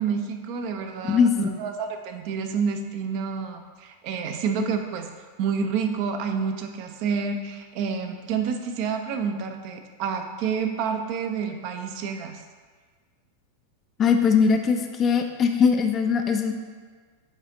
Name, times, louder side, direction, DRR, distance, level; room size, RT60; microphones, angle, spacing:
voice 1, 0.0-5.1 5.4-12.4, right 6 dB, 45° right, 5 dB, 0.6 m, -29 dB
voice 2, 14.0-16.5, left 6 dB, 25° left, 5 dB, 0.5 m, -20 dB
8.0 x 4.9 x 2.7 m, 1.5 s
figure-of-eight pair, 90°, 0 cm